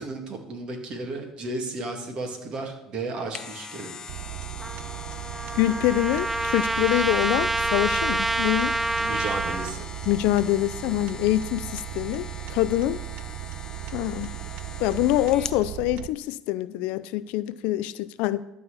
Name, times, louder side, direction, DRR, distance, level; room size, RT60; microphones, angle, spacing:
voice 1, 0.0-3.9 9.0-9.8, right 3 dB, 45° right, 2.4 m, -33 dB
sound 1, 3.1-15.6 16.1-16.2, left 5 dB, 30° left, 0.6 m, -42 dB
sound 2, 4.1-16.1, right 14 dB, 70° right, 0.5 m, -37 dB
Trumpet, 4.6-9.7, right 2 dB, 10° right, 0.6 m, -27 dB
voice 2, 5.6-8.8 10.1-13.0 13.9-14.3 14.8-18.4, left 15 dB, 75° left, 0.4 m, -25 dB
12.0 x 4.2 x 8.2 m
supercardioid pair, 95°, 2 cm